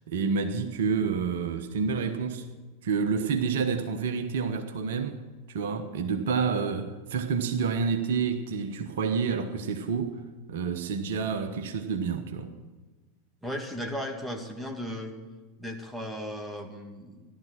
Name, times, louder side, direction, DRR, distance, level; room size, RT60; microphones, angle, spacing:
voice 1, 0.1-2.5 2.8-5.2 5.5-10.2 10.5-12.5, right 5 dB, 60° right, 1.1 m, -28 dB
voice 2, 13.4-15.1 15.6-17.3, equal, 5° right, 1.9 m, -36 dB
15.0 x 12.0 x 6.0 m
figure-of-eight pair, 85°, 0 cm